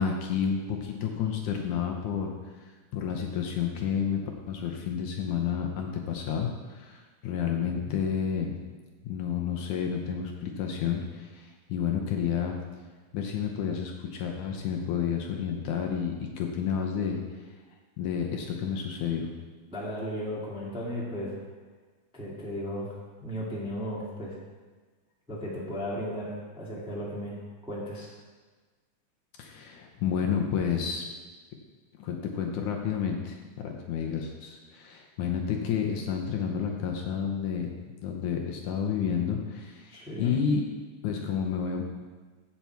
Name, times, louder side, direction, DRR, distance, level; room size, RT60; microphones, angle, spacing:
voice 1, 0.0-2.3 2.9-4.2 4.5-8.6 9.0-12.6 13.1-17.2 18.0-19.3 29.4-31.0 32.0-37.7 38.0-40.7 41.0-41.8, left 7 dB, 70° left, 2 dB, 2.1 m, -30 dB
voice 2, 7.6-8.0 19.7-21.4 22.1-22.9 23.2-24.3 25.3-28.1 39.9-40.4, equal, ahead, -5 dB, 1.2 m, -35 dB
15.5 x 5.7 x 4.5 m, 1.4 s
omnidirectional pair, 3.9 m